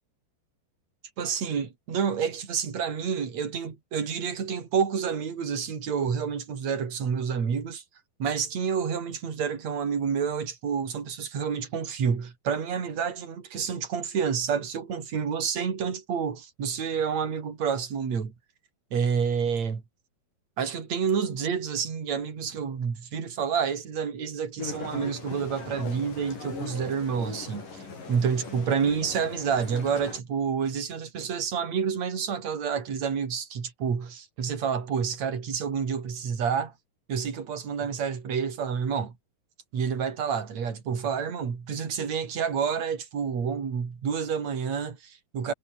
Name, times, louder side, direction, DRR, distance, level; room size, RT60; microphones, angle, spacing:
voice 1, 1.2-7.8 8.2-18.3 18.9-19.8 20.6-36.7 37.1-39.1 39.7-45.5, right 6 dB, 45° right, 4.6 m, -29 dB
sound 1, 24.6-30.2, left 4 dB, 55° left, 7.8 m, -40 dB
omnidirectional pair, 4.6 m